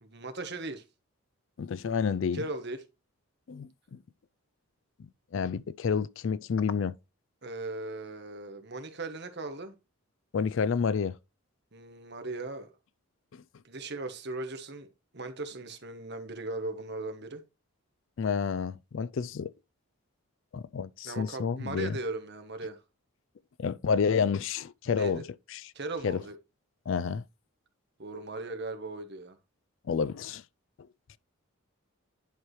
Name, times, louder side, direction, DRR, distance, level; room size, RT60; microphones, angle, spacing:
voice 1, 0.0-0.8 2.3-2.8 7.4-9.7 11.7-12.7 13.6-14.9 15.1-17.4 21.0-22.8 24.9-25.2 25.7-26.4 28.0-29.4, right 2 dB, 50° right, 1.2 m, -38 dB
voice 2, 1.6-2.4 3.5-3.7 5.3-6.9 10.3-11.2 13.3-13.4 18.2-19.5 20.5-21.9 23.6-25.2 25.5-25.6 26.0-26.2 26.9-27.2 29.9-30.4, left 6 dB, 55° left, 0.3 m, -29 dB
10.5 x 4.7 x 3.1 m
head